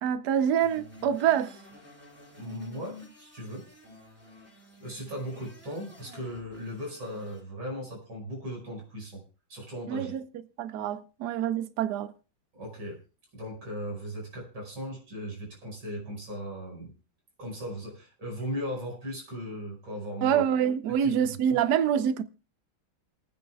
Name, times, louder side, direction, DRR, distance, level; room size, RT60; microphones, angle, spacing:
voice 1, 0.0-1.6 9.9-10.2 10.6-12.1 20.2-22.2, right 9 dB, 65° right, 1.2 m, -26 dB
sound 1, 0.6-7.4, left 3 dB, 5° right, 4.8 m, -51 dB
voice 2, 2.4-3.7 4.8-9.2 9.5-10.1 12.5-13.0 13.3-16.9 17.4-20.4 21.0-21.6, equal, 85° right, 6.1 m, -38 dB
27.5 x 9.6 x 2.3 m
omnidirectional pair, 2.1 m